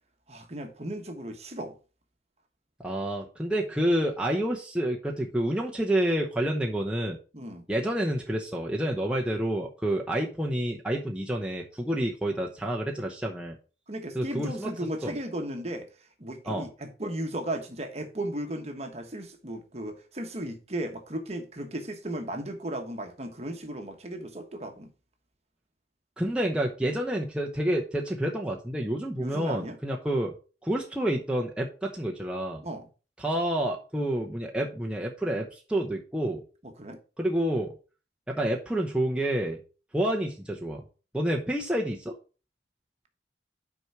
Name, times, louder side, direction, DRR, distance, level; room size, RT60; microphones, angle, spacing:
voice 1, 0.3-1.8 7.3-7.6 13.9-24.9 29.1-29.8 32.6-32.9 36.6-37.0, right 1 dB, 35° right, 1.2 m, -36 dB
voice 2, 2.8-7.2 7.7-13.6 14.1-14.7 15.0-15.1 16.5-16.7 26.2-30.3 30.6-32.6 33.2-36.4 37.2-37.7 38.3-39.6 39.9-40.8 41.1-42.1, right 1 dB, 5° right, 0.8 m, -28 dB
6.1 x 4.6 x 6.0 m
head